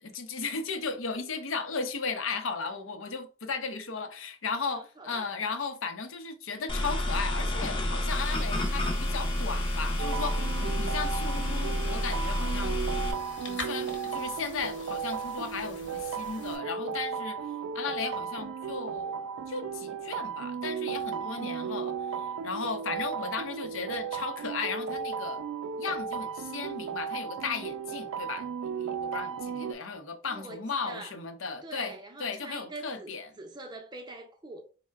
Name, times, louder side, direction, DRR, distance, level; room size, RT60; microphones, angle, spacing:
voice 1, 0.0-12.8 13.4-17.4 17.7-25.4 25.8-28.5 28.8-33.3, left 4 dB, 85° left, 0.6 m, -35 dB
voice 2, 4.6-5.3 23.5-23.6 30.3-31.1 31.6-34.6, right 2 dB, 20° right, 0.5 m, -44 dB
sound 1, 6.7-13.1, left 1 dB, 25° left, 0.6 m, -29 dB
sound 2, 8.1-16.6, left 2 dB, 65° left, 1.0 m, -46 dB
sound 3, 10.0-29.7, right 6 dB, 80° right, 0.3 m, -35 dB
4.5 x 2.1 x 3.3 m
head